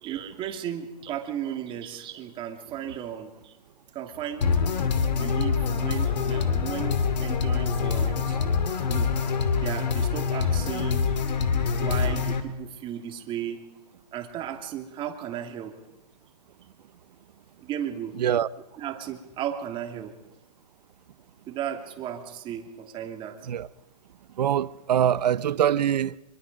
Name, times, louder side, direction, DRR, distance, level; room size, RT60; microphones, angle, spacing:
voice 1, 0.0-3.5 3.9-4.5 5.2-8.4 8.9-9.1 9.6-11.1 11.8-13.6 14.1-15.7 17.6-18.1 18.8-20.1 21.5-23.4, right 10 dB, 25° right, 2.5 m, -35 dB
sound 1, 4.4-12.4, left 5 dB, 85° left, 2.7 m, -25 dB
voice 2, 24.4-26.2, right 10 dB, 75° right, 0.9 m, -23 dB
25.5 x 23.5 x 5.3 m
hypercardioid pair, 145°, 21 cm